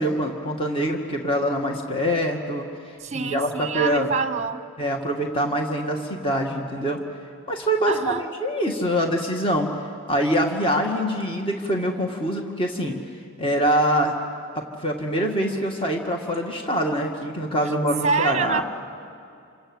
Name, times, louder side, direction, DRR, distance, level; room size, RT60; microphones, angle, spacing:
voice 1, 0.0-2.7 3.1-4.1 4.8-7.0 7.5-9.7 10.1-13.0 13.4-14.2 14.5-18.6, equal, 25° left, 2 dB, 2.1 m, -24 dB
voice 2, 3.0-4.6 7.9-8.2 18.0-18.6, right 5 dB, 30° right, 10 dB, 1.1 m, -26 dB
28.0 x 26.5 x 8.0 m, 2.4 s
head